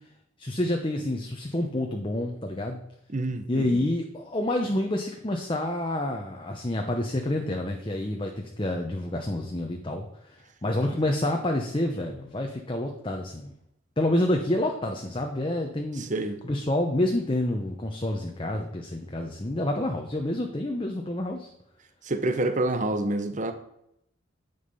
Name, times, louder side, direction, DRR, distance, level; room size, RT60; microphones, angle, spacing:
voice 1, 0.4-2.8 3.5-13.5 14.0-16.1 16.4-21.5, left 1 dB, 25° left, 3 dB, 0.9 m, -28 dB
voice 2, 3.1-3.7 16.0-16.4 22.1-23.5, right 2 dB, 35° right, 8 dB, 1.0 m, -27 dB
10.0 x 7.2 x 5.5 m, 0.78 s
head